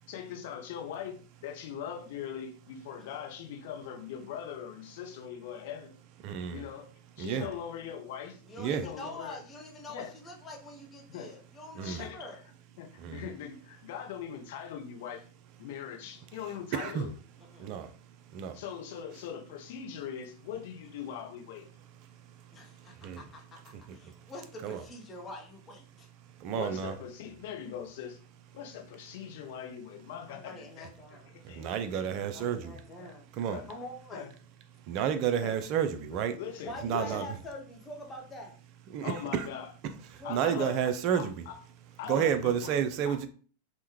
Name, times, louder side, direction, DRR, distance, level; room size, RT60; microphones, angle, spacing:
voice 1, 0.1-6.0 6.5-9.4 9.9-10.1 11.1-11.3 11.8-12.4 12.8-15.3 15.6-17.1 18.5-21.7 26.5-28.2 28.5-30.9 31.3-31.7 33.0-33.1 33.5-33.7 34.1-34.3 35.4-35.6 36.4-37.2 39.0-39.7 40.2-41.6 42.0-42.7 43.1-43.2, left 8 dB, 50° left, 3 dB, 0.6 m, -41 dB
voice 2, 6.2-6.6 7.2-7.5 8.6-8.8 11.8-12.1 13.0-13.2 16.7-17.0 17.6-17.9 18.3-18.6 23.0-23.2 24.6-24.8 26.4-26.9 31.4-32.8 33.4-33.6 34.9-36.4 36.8-37.2 38.9-39.5 40.3-41.3 42.1-43.3, right 8 dB, 40° right, 9 dB, 0.3 m, -30 dB
voice 3, 8.4-12.4 17.5-17.8 18.9-19.0 22.5-26.1 30.3-31.3 32.2-33.3 33.7-34.3 36.6-38.6 40.2-40.8 42.0-42.4, left 1 dB, 20° left, 0 dB, 0.7 m, -45 dB
3.4 x 2.1 x 2.9 m, 0.41 s
figure-of-eight pair, 90°, 0 cm